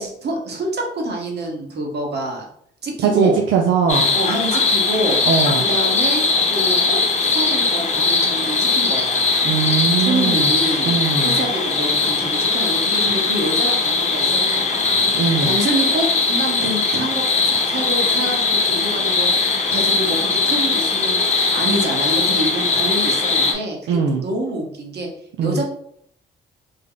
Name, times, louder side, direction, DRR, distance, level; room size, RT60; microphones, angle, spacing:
voice 1, 0.0-2.5 2.8-3.4 4.1-5.2 5.6-6.2 6.5-9.4 10.0-25.1 25.4-25.6, right 1 dB, 55° right, 1 dB, 1.1 m, -26 dB
voice 2, 3.0-4.1 5.3-5.6 9.4-10.5 10.8-11.4 15.1-15.5 23.9-24.2 25.4-25.6, right 6 dB, 80° right, 1 dB, 0.5 m, -20 dB
sound 1, 3.9-23.5, left 3 dB, 35° left, 0.8 m, -19 dB
3.6 x 2.1 x 3.7 m, 0.67 s
cardioid pair, 90°, 20 cm